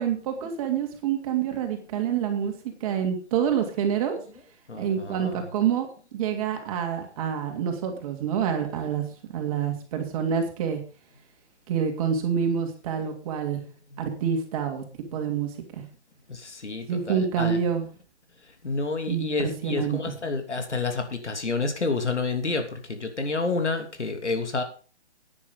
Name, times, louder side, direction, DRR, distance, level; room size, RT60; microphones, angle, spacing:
voice 1, 0.0-2.5 2.8-4.2 4.7-5.9 6.1-9.0 9.3-10.8 11.7-13.6 14.0-14.8 15.1-15.5 15.8-15.9 16.9-17.8 19.1-20.1, right 8 dB, 30° right, 5 dB, 2.9 m, -27 dB
voice 2, 4.7-5.5 16.3-17.6 18.6-24.6, left 3 dB, 90° left, 6 dB, 3.1 m, -29 dB
11.0 x 9.8 x 5.4 m, 0.37 s
hypercardioid pair, 150°, 34 cm